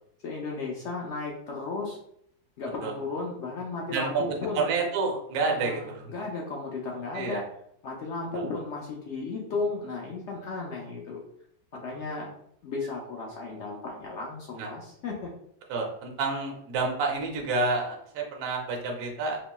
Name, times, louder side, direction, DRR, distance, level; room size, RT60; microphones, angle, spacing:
voice 1, 0.2-2.0 2.6-4.7 5.4-7.5 7.8-11.2 11.7-12.3 12.6-15.3, left 3 dB, 70° left, -2 dB, 0.6 m, -34 dB
voice 2, 3.9-4.2 4.6-6.1 7.1-7.4 14.6-14.7 15.7-19.4, right 3 dB, 65° right, 1 dB, 1.1 m, -29 dB
4.1 x 2.9 x 2.2 m, 0.69 s
omnidirectional pair, 1.8 m